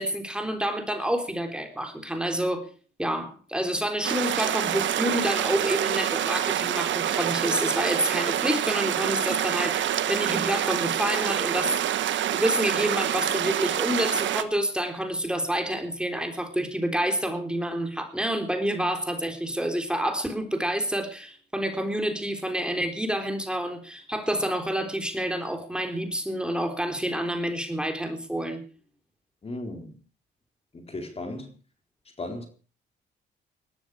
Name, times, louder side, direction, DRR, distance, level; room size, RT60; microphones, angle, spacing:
voice 1, 0.0-2.7 3.0-12.0 12.3-28.6, equal, 5° right, 3.8 m, -28 dB
sound 1, 4.0-14.4, right 11 dB, 70° right, 1.4 m, -26 dB
voice 2, 29.4-29.9 30.7-31.5 32.2-32.5, left 2 dB, 30° left, 4.0 m, -35 dB
19.5 x 13.5 x 4.9 m
cardioid pair, 90°, 20 cm